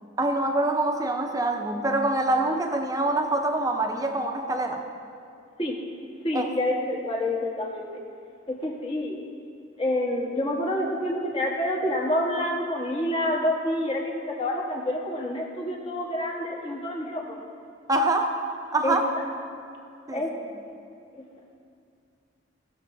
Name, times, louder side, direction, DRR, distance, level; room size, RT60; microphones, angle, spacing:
voice 1, 0.2-4.9 6.3-6.5 17.9-18.5 18.7-19.0 20.1-20.2, right 2 dB, 20° right, 4 dB, 0.7 m, -25 dB
voice 2, 6.2-7.9 8.5-9.2 9.8-17.4 18.8-19.2 20.1-20.3 21.2-21.3, left 1 dB, 30° left, -2 dB, 1.2 m, -28 dB
16.5 x 6.7 x 2.7 m, 2.4 s
head